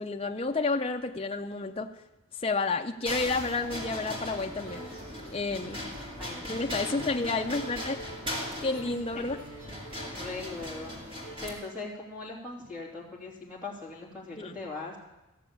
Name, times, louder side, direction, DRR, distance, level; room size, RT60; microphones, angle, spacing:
voice 1, 0.0-1.9 2.4-4.9 5.3-5.9 6.5-8.0 8.6-9.4 14.4-14.5, left 3 dB, 25° left, 4 dB, 0.6 m, -30 dB
sound 1, 3.1-11.5, left 1 dB, 25° right, 2.6 m, -39 dB
sound 2, 3.7-11.4, right 1 dB, 55° right, 3.6 m, -47 dB
voice 2, 5.4-5.8 6.2-6.5 6.8-7.5 8.9-9.2 10.1-15.0, left 3 dB, 5° right, -4 dB, 3.2 m, -41 dB
15.5 x 6.9 x 8.5 m, 0.99 s
head